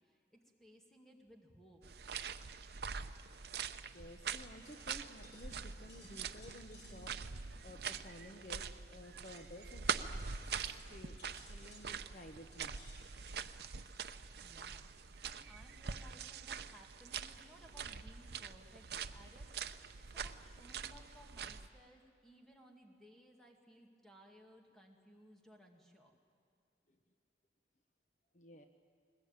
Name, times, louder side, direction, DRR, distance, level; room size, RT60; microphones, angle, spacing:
voice 1, 0.0-1.8 14.4-14.9 15.2-19.8 20.1-26.1, equal, 5° left, 2 dB, 2.1 m, -61 dB
sound 1, 1.8-21.7, right 6 dB, 65° right, 0.7 m, -44 dB
voice 2, 3.9-12.7 26.9-27.0 28.3-28.7, left 1 dB, 40° left, 6 dB, 0.9 m, -54 dB
sound 2, 4.7-15.6, left 1 dB, 85° left, 6.6 m, -65 dB
sound 3, 5.6-9.6, equal, 60° left, 3.2 m, -67 dB
21.5 x 20.0 x 8.9 m, 2.4 s
head